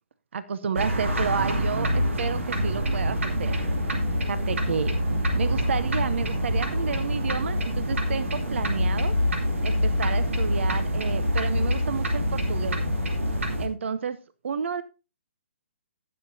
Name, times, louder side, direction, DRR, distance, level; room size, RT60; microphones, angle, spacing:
voice 1, 0.3-3.6 4.3-5.0 5.3-9.1 9.6-12.8 13.6-14.8, right 6 dB, 70° right, 15 dB, 0.7 m, -31 dB
sound 1, 0.7-13.7, equal, 85° right, 2.5 m, -26 dB
17.5 x 6.5 x 2.7 m, 0.30 s
hypercardioid pair, 150°, 7 cm